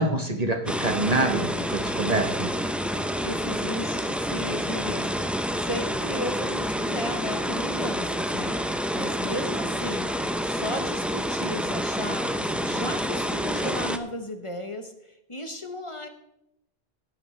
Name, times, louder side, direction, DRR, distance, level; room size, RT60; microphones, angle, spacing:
voice 1, 0.0-2.5, right 2 dB, 40° right, 4 dB, 1.1 m, -26 dB
sound 1, 0.7-14.0, equal, ahead, 0.4 m, -28 dB
voice 2, 3.2-10.1 10.4-16.1, left 1 dB, 30° left, 6 dB, 0.9 m, -35 dB
17.5 x 9.1 x 3.2 m, 0.84 s
omnidirectional pair, 1.1 m